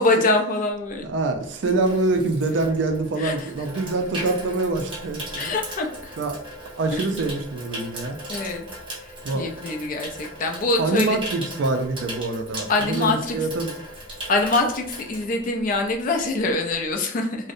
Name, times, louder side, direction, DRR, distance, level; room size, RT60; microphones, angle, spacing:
voice 1, 0.0-1.0 3.2-3.3 5.4-6.2 6.9-7.0 8.3-8.7 9.3-11.2 12.7-13.4 14.3-17.4, left 2 dB, 45° left, 3 dB, 0.3 m, -24 dB
Water tap faucet / Sink (filling or washing), 0.9-15.9 16.2-16.5, right 1 dB, 25° right, 0.6 m, -38 dB
voice 2, 1.0-5.5 6.2-6.4 6.8-8.2 9.2-9.5 10.8-13.7, right 3 dB, 65° right, 5 dB, 0.4 m, -25 dB
2.6 x 2.0 x 2.5 m, 0.66 s
head